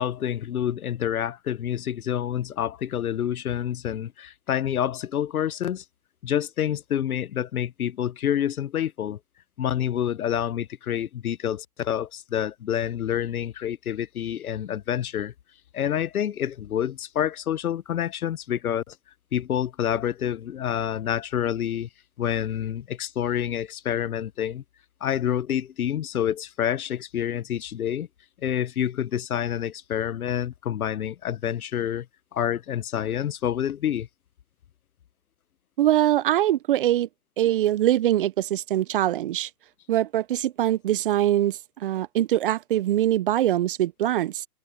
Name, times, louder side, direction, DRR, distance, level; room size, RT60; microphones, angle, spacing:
voice 1, 0.0-5.8 6.2-9.2 9.6-15.3 15.7-18.9 19.3-21.9 22.2-24.6 25.0-28.1 28.4-32.1 32.3-34.1, left 10 dB, 60° left, 1.0 m, -28 dB
voice 2, 35.8-37.1 37.4-39.5 39.9-44.5, right 13 dB, 35° right, 0.8 m, -23 dB
hypercardioid pair, 135°, 48 cm